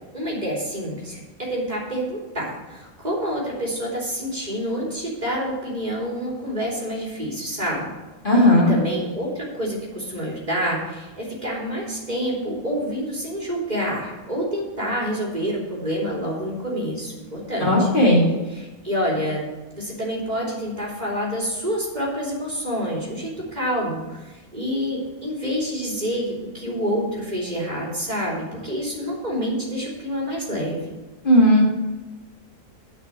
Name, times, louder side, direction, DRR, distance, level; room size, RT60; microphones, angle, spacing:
voice 1, 0.1-7.9 8.3-17.9 18.5-19.4 19.7-30.9, equal, 30° right, -4 dB, 3.4 m, -28 dB
voice 2, 8.2-8.7 17.6-18.3 31.2-31.6, left 1 dB, 35° left, -5 dB, 2.9 m, -15 dB
9.8 x 6.1 x 7.5 m, 1.2 s
omnidirectional pair, 1.5 m